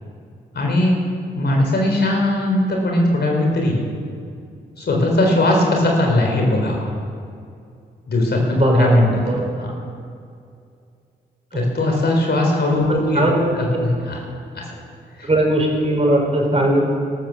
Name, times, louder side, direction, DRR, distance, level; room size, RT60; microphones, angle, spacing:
voice 1, 0.5-1.0 1.3-3.8 4.8-6.9 8.1-9.1 9.6-9.7 11.5-13.2 13.6-14.2 14.5-14.6 15.2-15.3, left 1 dB, 60° left, 0 dB, 4.1 m, -19 dB
voice 2, 8.5-9.5 11.5-11.7 12.7-13.9 15.2-16.9, right 1 dB, 35° right, 0 dB, 4.9 m, -19 dB
13.5 x 13.0 x 7.0 m, 2.4 s
supercardioid pair, 45°, 19 cm